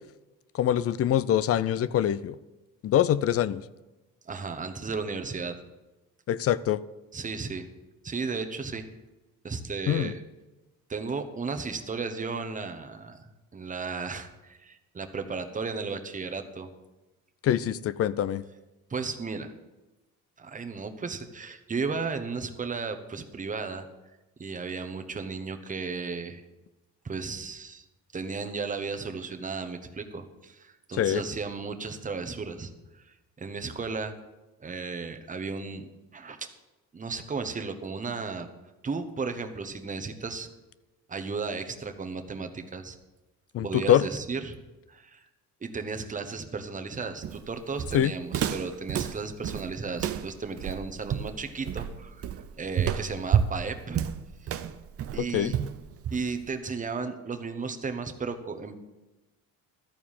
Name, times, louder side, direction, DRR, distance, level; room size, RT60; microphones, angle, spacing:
voice 1, 0.5-2.4 2.8-3.6 6.3-6.8 9.9-10.1 17.4-18.4 30.9-31.2 43.5-44.1 47.9-48.1 55.2-55.5, left 11 dB, 45° left, 18 dB, 0.4 m, -24 dB
voice 2, 4.3-5.6 7.1-7.7 8.0-8.8 9.4-10.2 10.9-13.3 13.5-16.7 18.9-19.5 20.4-23.9 24.4-26.4 27.0-27.8 28.1-32.7 33.1-34.1 34.6-35.8 36.1-36.5 36.9-38.5 38.8-40.5 41.1-43.0 43.6-44.6 44.9-45.2 45.6-52.3 52.6-54.0 54.4-54.6 55.1-55.6 56.1-58.8, right 4 dB, 25° right, 7 dB, 1.0 m, -34 dB
Walk footsteps, 47.2-56.5, right 9 dB, 45° right, 0.6 m, -30 dB
13.0 x 4.6 x 7.2 m, 1.1 s
cardioid pair, 105°, 33 cm